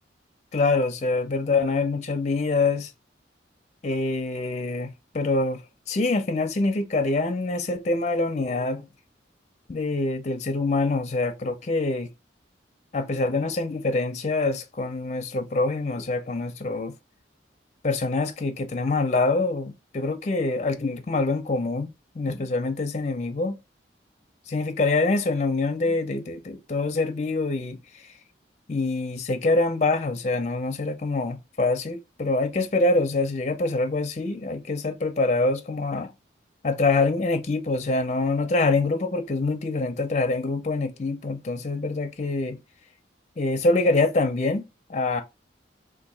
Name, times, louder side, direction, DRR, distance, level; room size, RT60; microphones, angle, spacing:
voice 1, 0.5-2.9 3.8-5.6 5.9-8.9 9.7-12.1 12.9-16.9 17.8-23.5 24.5-28.0 28.7-36.1 36.6-42.6 43.4-45.2, left 3 dB, 35° left, 0.5 m, -25 dB
2.8 x 2.5 x 3.9 m
head